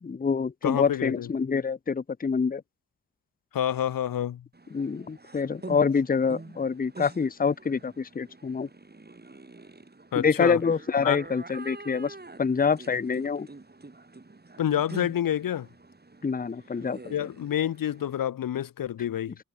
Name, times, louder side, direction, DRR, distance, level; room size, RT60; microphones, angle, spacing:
voice 1, 0.0-2.6 4.7-8.7 10.1-13.5 16.2-17.3, left 5 dB, 25° left, 0.7 m, -26 dB
voice 2, 0.6-1.3 3.5-4.4 10.1-10.6 11.0-11.2 14.6-15.7 17.1-19.4, left 10 dB, 85° left, 0.9 m, -28 dB
sound 1, 4.5-18.3, right 3 dB, 30° right, 7.6 m, -46 dB
cardioid pair, 75°, 33 cm